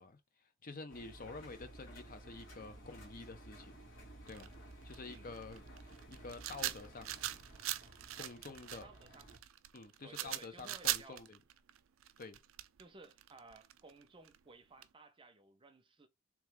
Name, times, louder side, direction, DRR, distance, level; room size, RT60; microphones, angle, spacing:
voice 1, 0.0-3.8 4.3-4.5 4.8-5.6 6.1-7.1 8.2-8.9 9.7-11.4 12.2-12.4, left 3 dB, 45° left, 0.8 m, -49 dB
Engine, 0.9-9.4, right 1 dB, 85° left, 1.9 m, -55 dB
sound 1, 4.3-14.4 14.8-14.9, right 14 dB, 80° right, 0.4 m, -41 dB
voice 2, 8.8-9.3 10.0-11.2 12.8-16.1, right 3 dB, 25° right, 0.6 m, -57 dB
3.6 x 3.1 x 3.4 m
head